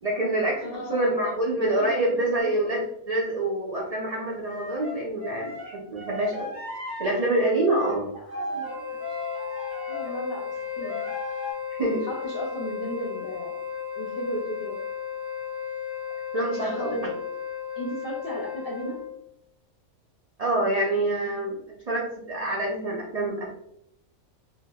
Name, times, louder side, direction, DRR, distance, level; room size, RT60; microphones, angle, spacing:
voice 1, 0.0-6.5 7.0-8.1 11.7-12.1 16.3-16.9 20.4-21.6 21.9-23.5, right 1 dB, 85° right, -4 dB, 0.3 m, -26 dB
voice 2, 0.6-2.6 8.1-9.0 9.9-11.1 12.0-13.5 14.0-14.8 16.6-17.2 17.7-19.0, equal, 60° left, 0 dB, 0.6 m, -35 dB
sound 1, 2.4-2.7 4.1-10.2 10.5-11.5, left 2 dB, 10° right, 1.1 m, -37 dB
Wind instrument woodwind instrument, 8.6-19.2, left 8 dB, 35° right, 1.1 m, -34 dB
4.5 x 2.0 x 2.2 m, 0.78 s
omnidirectional pair, 1.4 m